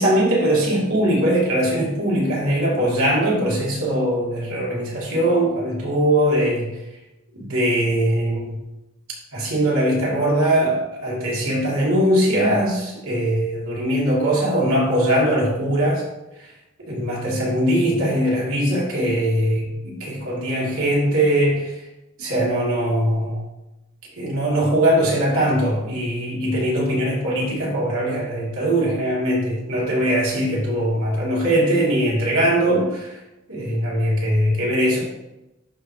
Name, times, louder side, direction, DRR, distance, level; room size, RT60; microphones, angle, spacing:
voice 1, 0.0-6.7 7.3-8.6 9.3-16.0 16.4-16.5 16.9-21.8 22.2-23.4 24.1-33.2 33.5-35.0, right 1 dB, 75° right, -4 dB, 2.6 m, -21 dB
11.0 x 4.8 x 2.8 m, 0.97 s
head